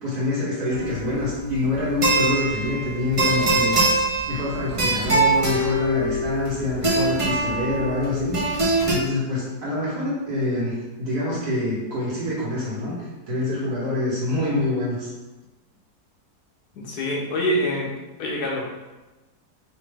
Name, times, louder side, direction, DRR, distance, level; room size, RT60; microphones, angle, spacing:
voice 1, 0.0-8.6 8.9-13.0 13.3-15.1, left 2 dB, 70° right, -8 dB, 1.8 m, -26 dB
sound 1, 0.7-8.9, right 2 dB, 30° right, 0.6 m, -23 dB
voice 2, 16.8-17.9 18.2-18.6, equal, 75° left, -2 dB, 1.4 m, -25 dB
5.0 x 2.8 x 3.5 m, 1.1 s
omnidirectional pair, 1.7 m